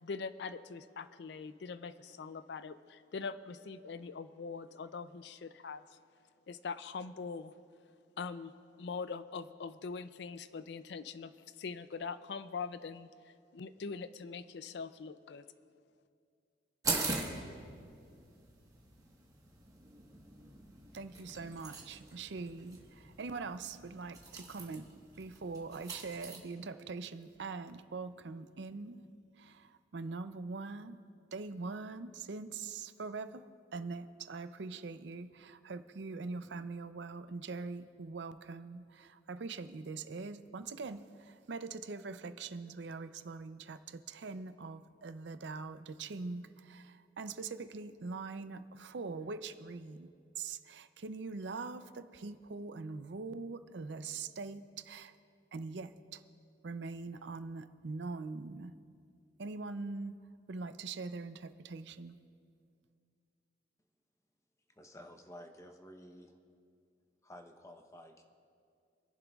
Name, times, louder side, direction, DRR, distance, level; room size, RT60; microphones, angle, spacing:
voice 1, 0.0-6.0 6.5-7.5 8.2-13.1 13.5-15.5, left 5 dB, 60° left, 13 dB, 0.4 m, -42 dB
sound 1, 16.8-26.4, right 3 dB, 20° right, 1.2 m, -42 dB
voice 2, 20.9-24.9 25.2-29.1 29.4-31.0 31.3-33.4 33.7-55.1 55.5-56.2 56.6-58.7 59.4-60.2 60.5-62.2, right 4 dB, 70° right, 11 dB, 0.5 m, -43 dB
voice 3, 64.8-66.4 67.2-68.2, equal, 15° left, 4 dB, 0.7 m, -52 dB
27.5 x 11.0 x 2.4 m, 2.3 s
head